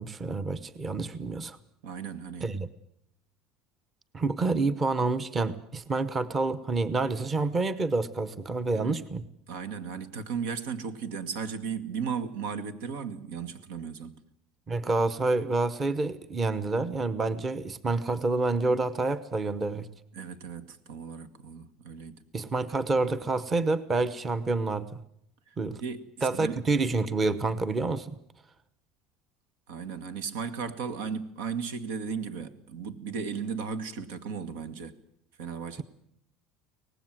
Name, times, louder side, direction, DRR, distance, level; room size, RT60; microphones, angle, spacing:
voice 1, 0.0-1.6 2.4-2.7 4.1-9.2 14.7-19.9 22.3-24.9 25.6-25.8 26.2-28.1, right 3 dB, 20° right, 0.9 m, -28 dB
voice 2, 1.8-2.6 8.7-9.0 9.5-14.2 20.1-22.2 25.5-26.6 29.7-35.0 35.4-35.8, right 6 dB, 85° right, 2.1 m, -36 dB
24.5 x 19.0 x 7.6 m
cardioid pair, 165°, 0 cm